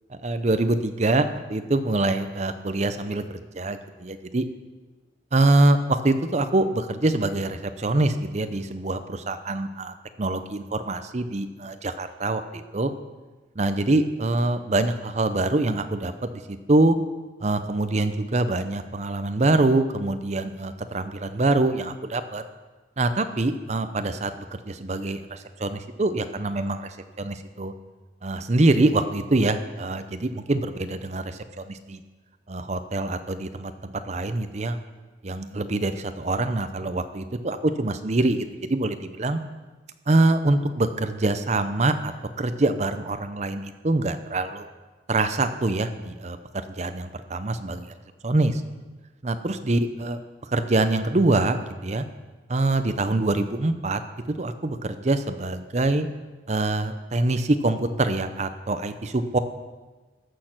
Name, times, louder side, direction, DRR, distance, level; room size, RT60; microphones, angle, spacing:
voice 1, 0.2-3.2 3.5-4.4 5.3-12.9 13.6-17.0 17.4-22.4 23.0-27.7 28.2-32.0 32.5-34.8 35.2-39.4 40.1-42.1 42.4-44.7 45.1-46.4 46.7-47.9 48.2-48.6 49.2-50.2 50.5-52.0 52.5-54.0 54.4-56.1 56.5-59.4, right 2 dB, 40° right, 10 dB, 0.7 m, -24 dB
14.0 x 6.6 x 5.9 m, 1.2 s
head